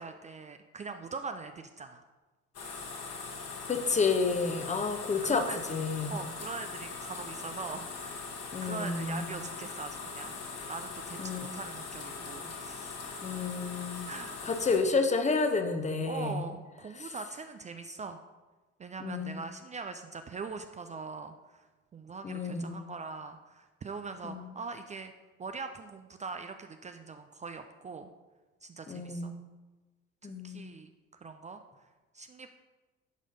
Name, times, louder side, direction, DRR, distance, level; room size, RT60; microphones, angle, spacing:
voice 1, 0.0-2.0 4.4-4.7 5.2-5.6 6.1-8.2 8.6-10.4 10.7-13.0 14.1-14.4 16.1-18.2 18.8-21.7 21.9-25.1 25.4-28.1 28.6-29.3 30.2-30.9 31.2-31.9 32.1-32.5, right 4 dB, 20° right, 7 dB, 0.4 m, -42 dB
sound 1, 2.5-14.8, left 4 dB, 40° left, 1.6 m, -41 dB
voice 2, 3.7-5.4 5.7-6.2 8.5-9.3 11.2-11.4 13.2-14.1 14.4-16.5 17.0-17.1 19.0-19.4 22.2-22.8 24.2-24.5 28.9-29.3 30.2-30.7, left 4 dB, 20° left, 6 dB, 0.9 m, -30 dB
10.5 x 4.9 x 5.2 m, 1.2 s
figure-of-eight pair, 55°, 38 cm